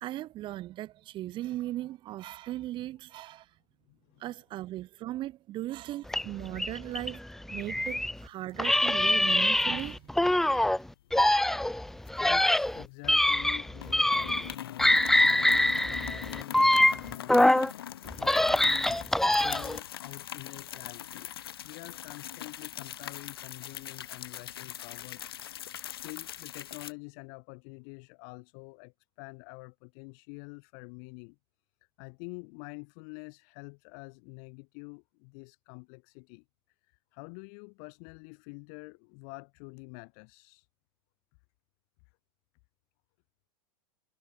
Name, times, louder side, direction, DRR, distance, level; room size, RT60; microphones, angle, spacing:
voice 1, 0.0-3.4 4.2-7.2 7.5-10.0, right 15 dB, 40° right, 1.4 m, -37 dB
voice 2, 3.9-4.2 8.0-8.1 11.6-17.5 17.8-25.2 25.9-31.4 32.0-36.4 37.1-40.7, left 40 dB or more, 55° left, 1.1 m, -47 dB
sound 1, 6.1-8.2 8.6-10.8 11.1-14.5 14.8-17.7 18.1-19.8, left 1 dB, 5° left, 0.3 m, -24 dB
sound 2, 8.2-8.9 9.2-9.4 9.8-10.6 11.1-13.1 13.3-13.5 13.8-26.9, left 11 dB, 80° left, 1.0 m, -42 dB
hypercardioid pair, 95°, 12 cm